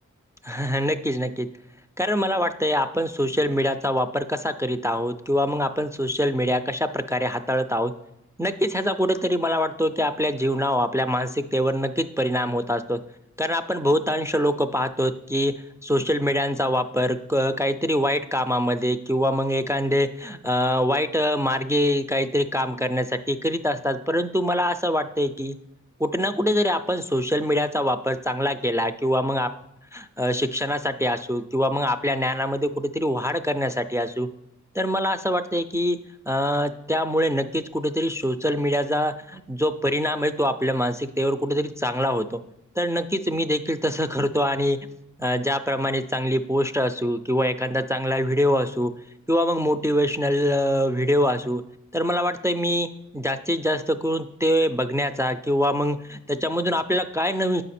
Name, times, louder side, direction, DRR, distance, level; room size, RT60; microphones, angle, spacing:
voice 1, 0.4-1.5 2.0-7.9 8.4-13.0 13.4-15.5 15.8-25.6 26.0-29.5 29.9-34.3 34.7-36.0 36.3-42.4 42.8-44.8 45.2-48.9 49.3-51.6 51.9-52.9 53.1-57.6, equal, 10° right, 8 dB, 0.3 m, -24 dB
7.2 x 4.9 x 4.2 m, 0.83 s
wide cardioid pair, 50°, 31 cm